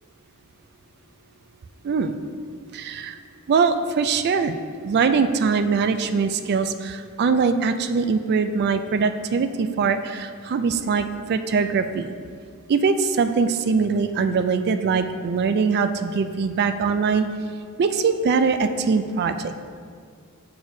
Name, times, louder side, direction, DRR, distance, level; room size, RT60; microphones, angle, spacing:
voice 1, 1.8-2.2 2.7-3.2 3.5-4.6 4.8-12.1 12.7-17.3 17.8-19.6, right 5 dB, 50° right, 10 dB, 0.3 m, -22 dB
6.8 x 6.3 x 2.7 m, 2.1 s
head